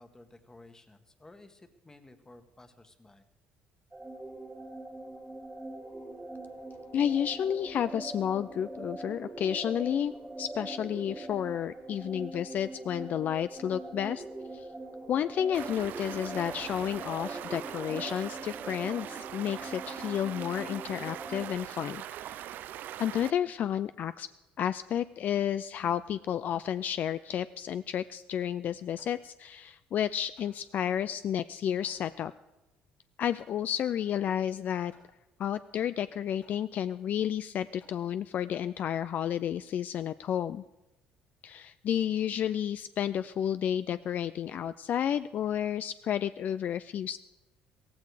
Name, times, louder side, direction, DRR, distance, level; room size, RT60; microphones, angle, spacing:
voice 1, 0.0-3.3, left 2 dB, 15° left, 9 dB, 1.5 m, -54 dB
sound 1, 3.9-21.6, right 2 dB, 15° right, 1.6 m, -42 dB
voice 2, 6.9-10.1 10.4-14.2 14.5-14.7 15.1-22.4 23.0-24.3 24.6-32.3 33.2-34.9 35.4-40.6 41.4-47.2, left 9 dB, 55° left, 13 dB, 0.4 m, -31 dB
Stream, 15.5-23.3, right 12 dB, 65° right, 0.5 m, -42 dB
Hammer, 29.0-38.6, left 4 dB, 80° left, 5.7 m, -66 dB
15.5 x 15.0 x 4.9 m, 1.0 s
cardioid pair, 100°, 3 cm